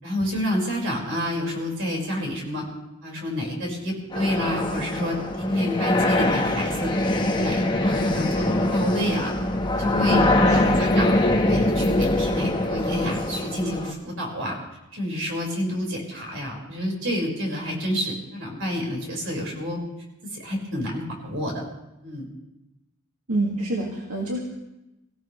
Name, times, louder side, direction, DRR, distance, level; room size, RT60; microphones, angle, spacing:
voice 1, 0.0-2.7 3.0-6.9 7.3-9.3 9.8-10.2 10.5-14.6 14.9-19.8 20.2-21.6 22.0-22.3, equal, 60° right, -1 dB, 5.3 m, -28 dB
sound 1, 4.1-13.9, left 1 dB, 20° left, 1.3 m, -23 dB
voice 2, 10.1-10.8 23.3-24.4, right 2 dB, 85° right, -2 dB, 2.2 m, -27 dB
25.0 x 16.0 x 3.3 m, 0.95 s
head